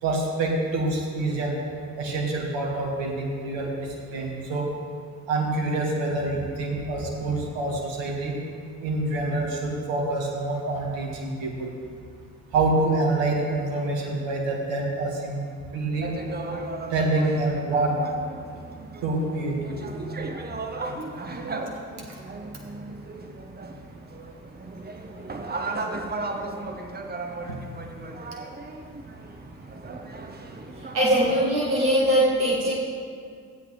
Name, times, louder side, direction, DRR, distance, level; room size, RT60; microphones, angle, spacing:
voice 1, 0.0-1.5 2.0-4.7 5.3-8.3 8.8-11.7 12.5-15.4 15.7-16.1 16.9-17.9 19.0-19.6 22.1-22.2, right 2 dB, 60° right, -1 dB, 1.9 m, -26 dB
sound 1, 16.0-31.5, right 2 dB, 20° right, 0.9 m, -36 dB
voice 2, 30.9-32.8, equal, 80° right, -7 dB, 1.4 m, -21 dB
15.0 x 8.3 x 3.3 m, 2.2 s
figure-of-eight pair, 45°, 50 cm